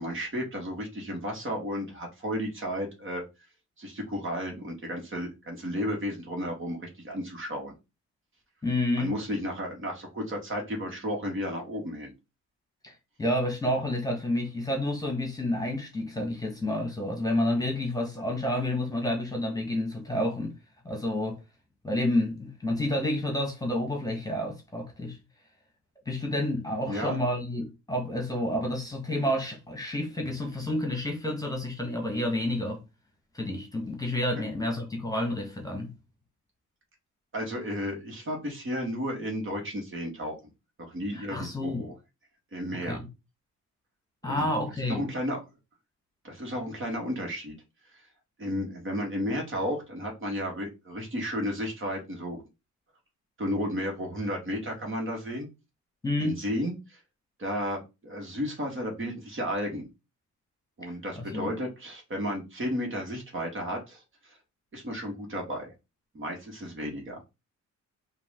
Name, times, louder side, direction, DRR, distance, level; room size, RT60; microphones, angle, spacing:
voice 1, 0.0-3.2 3.8-7.7 9.0-12.1 26.9-27.2 37.3-40.5 40.8-41.9 42.5-43.0 44.2-44.5 44.8-45.4 46.2-47.6 47.9-48.0 48.4-52.4 53.4-55.5 56.2-57.0 57.4-59.9 60.8-64.4 64.7-65.7 66.1-67.2, equal, 40° right, 2.1 m, -33 dB
voice 2, 8.6-9.1 12.8-12.9 13.2-20.6 20.8-21.4 21.8-25.2 26.0-32.8 33.3-35.9 41.1-41.9 42.9-43.1 44.2-45.0 56.0-56.4 61.2-61.5, left 1 dB, 10° left, 1.5 m, -29 dB
4.7 x 2.8 x 3.8 m
cardioid pair, 90°, 30 cm